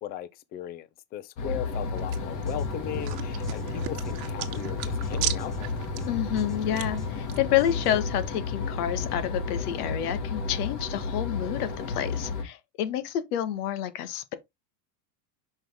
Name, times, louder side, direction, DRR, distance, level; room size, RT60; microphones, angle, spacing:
voice 1, 0.0-5.5, left 11 dB, 25° left, 0.4 m, -38 dB
sound 1, 1.4-12.4, left 4 dB, 45° left, 1.8 m, -32 dB
sound 2, 1.7-7.4, right 15 dB, 65° right, 1.3 m, -38 dB
sound 3, 2.2-8.3, equal, ahead, 1.0 m, -41 dB
voice 2, 6.1-14.3, left 11 dB, 85° left, 1.4 m, -29 dB
6.2 x 5.3 x 3.5 m
supercardioid pair, 155°, 44 cm